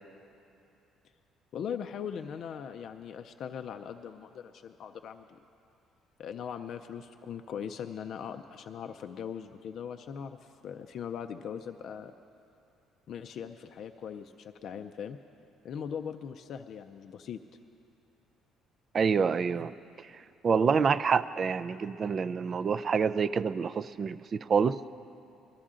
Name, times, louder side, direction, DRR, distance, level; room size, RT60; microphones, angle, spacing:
voice 1, 1.5-5.4 6.2-12.1 13.1-15.2 15.6-17.4, left 8 dB, 55° left, 7 dB, 0.4 m, -40 dB
voice 2, 18.9-19.7 20.4-24.8, right 6 dB, 35° right, 15 dB, 0.3 m, -27 dB
20.5 x 13.0 x 3.7 m, 2.7 s
cardioid pair, 125°, 0 cm